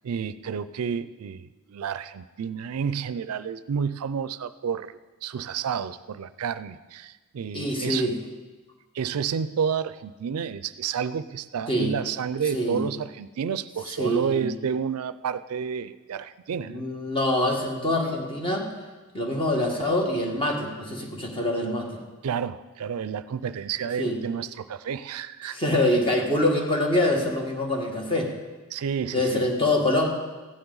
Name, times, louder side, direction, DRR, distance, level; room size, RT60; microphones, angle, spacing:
voice 1, 0.0-8.1 8.9-16.7 22.2-25.6 28.7-29.5, right 7 dB, 75° right, 14 dB, 0.4 m, -30 dB
voice 2, 7.5-8.1 11.7-11.9 12.5-12.8 14.0-14.5 16.6-18.7 19.1-21.9 24.0-24.2 25.5-28.3 29.1-30.1, left 1 dB, 25° left, 1 dB, 1.5 m, -25 dB
15.0 x 9.7 x 3.9 m, 1.2 s
head